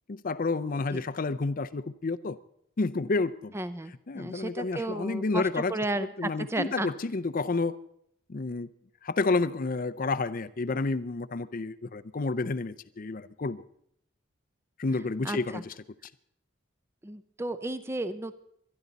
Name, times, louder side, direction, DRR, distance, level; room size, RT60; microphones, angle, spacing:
voice 1, 0.1-2.4 2.8-3.5 4.1-5.7 6.2-7.8 8.3-8.7 9.0-13.6 14.8-15.7, left 3 dB, 40° left, 0.5 m, -30 dB
voice 2, 3.5-6.9 15.2-15.6 17.0-18.3, right 1 dB, 10° right, 0.5 m, -33 dB
23.0 x 11.0 x 4.0 m
head